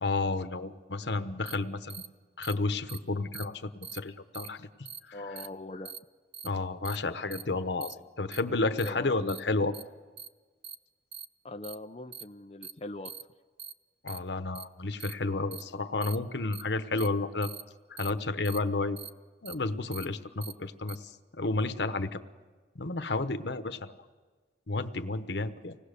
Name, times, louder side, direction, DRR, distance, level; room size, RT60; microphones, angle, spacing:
voice 1, 0.0-2.1 2.4-4.7 5.0-5.2 6.4-9.7 14.0-17.5 17.9-19.0 19.4-22.2 22.7-23.9 24.7-25.8, left 3 dB, 85° left, 9 dB, 1.1 m, -31 dB
sound 1, 1.5-1.6 1.9-2.1 2.4-2.5 2.9-3.0 3.3-3.4 3.8-4.0 4.3-4.5 4.8-5.0 5.4-5.5 5.8-6.0 6.3-6.5 6.8-7.0 7.3-7.4 7.8-7.9 8.3-8.4 8.8-8.9 9.3-9.4 9.7-9.8 10.2-10.3 10.6-10.7 11.1-11.2 11.6-11.7 12.1-12.2 12.6-12.7 13.0-13.2 13.6-13.7 14.1-14.2 14.5-14.6 15.0-15.1 15.5-15.6 16.0-16.2 16.5-16.6 17.0-17.1 17.4-17.6 18.0-18.1 18.4-18.6 19.0-19.1 19.4-19.5 19.9-20.0 20.4-20.5 20.9-21.0, right 8 dB, 30° right, 0.6 m, -42 dB
voice 2, 5.1-5.9 8.9-9.2 11.4-13.1, left 2 dB, 35° left, 5 dB, 0.6 m, -41 dB
25.5 x 19.0 x 6.8 m, 1.4 s
head